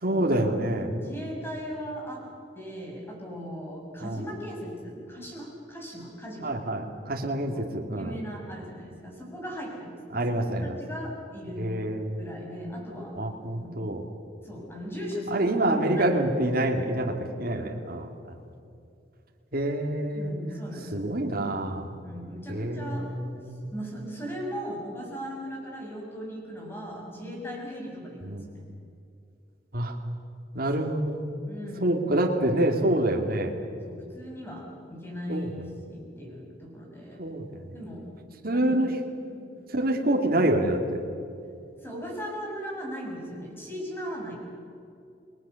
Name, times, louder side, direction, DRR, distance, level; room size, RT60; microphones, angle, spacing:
voice 1, 0.0-0.9 4.0-4.2 6.4-8.1 10.1-10.8 11.6-12.2 13.2-14.0 15.3-18.1 19.5-20.3 20.9-21.9 22.5-23.0 23.4-23.7 28.3-28.4 29.7-29.9 30.5-31.3 31.8-33.5 35.3-35.5 37.2-37.5 38.4-38.9 39.7-41.0, right 1 dB, 55° right, 1 dB, 2.3 m, -26 dB
voice 2, 0.9-2.2 2.5-6.8 7.5-7.6 7.9-11.9 12.2-13.2 13.6-13.8 14.4-16.5 17.6-17.7 20.1-21.0 22.0-23.0 23.7-28.7 31.5-32.0 33.9-37.2 37.7-38.1 38.5-38.8 39.2-39.4 41.8-44.4, equal, 15° left, -2 dB, 7.1 m, -38 dB
29.5 x 20.5 x 7.0 m, 2.5 s
head